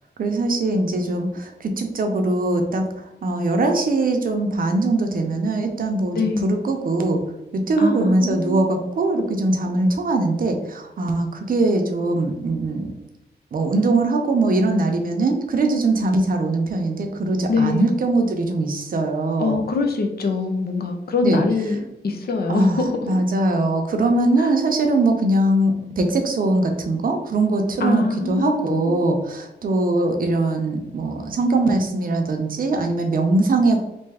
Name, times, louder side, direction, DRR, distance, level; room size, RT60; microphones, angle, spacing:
voice 1, 0.2-2.8 3.2-7.2 7.5-12.9 13.5-19.6 21.2-21.4 22.5-22.8 23.1-33.8, right 2 dB, 55° right, 4 dB, 0.6 m, -21 dB
voice 2, 6.1-6.5 7.8-8.7 17.5-17.9 19.4-23.2 24.4-24.5 27.8-28.9, left 3 dB, 65° left, 4 dB, 0.6 m, -23 dB
3.3 x 2.7 x 3.4 m, 0.92 s
wide cardioid pair, 175°, 17 cm